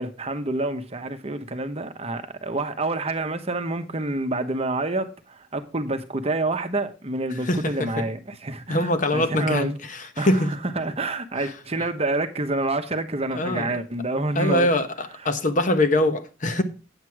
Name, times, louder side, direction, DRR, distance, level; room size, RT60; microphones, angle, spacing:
voice 1, 0.0-9.7 10.2-14.7 15.2-15.3, right 2 dB, 30° right, 1.0 m, -28 dB
voice 2, 7.5-8.0 8.7-10.5 13.3-13.7 14.4-16.6, left 1 dB, 40° left, 1.0 m, -23 dB
8.9 x 8.1 x 4.7 m
head